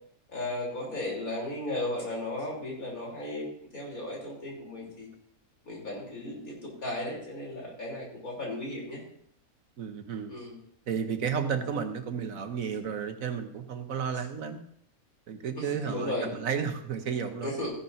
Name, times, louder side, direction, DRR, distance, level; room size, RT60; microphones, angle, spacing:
voice 1, 0.3-3.5 3.7-5.1 5.6-9.0 10.3-10.6 15.6-16.4 17.4-17.7, left 1 dB, 70° left, -2 dB, 3.9 m, -35 dB
voice 2, 9.8-10.3 10.9-14.6 15.3-17.5, right 7 dB, 70° right, 7 dB, 1.3 m, -32 dB
14.0 x 11.5 x 2.7 m, 0.67 s
omnidirectional pair, 1.5 m